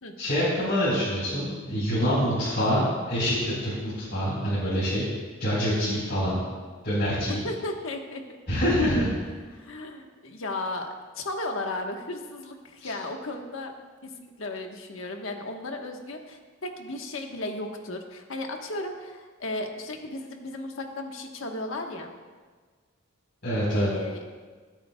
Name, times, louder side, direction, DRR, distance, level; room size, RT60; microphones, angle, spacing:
voice 1, 0.2-5.0 5.4-6.4 6.8-7.4 8.5-9.1 12.8-12.9 23.4-23.9, equal, 55° left, -10 dB, 4.2 m, -25 dB
voice 2, 7.3-8.2 9.5-10.9 11.1-13.7 14.0-22.1 23.7-24.2, left 2 dB, 75° left, 3 dB, 1.3 m, -35 dB
25.0 x 8.9 x 2.3 m, 1.5 s
head